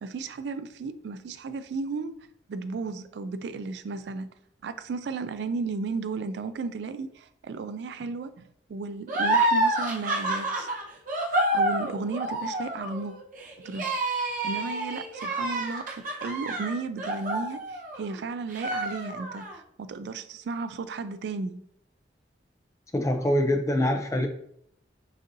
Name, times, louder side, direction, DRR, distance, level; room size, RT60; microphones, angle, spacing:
voice 1, 0.0-2.1 2.5-4.3 4.6-10.7 11.3-13.1 13.6-14.2 14.4-21.6, right 4 dB, 65° right, 0.3 m, -34 dB
sound 1, 9.1-18.1 18.5-19.5, right 1 dB, 45° right, 0.8 m, -28 dB
voice 2, 22.9-24.3, left 1 dB, 15° left, 0.4 m, -24 dB
6.3 x 2.6 x 2.6 m
head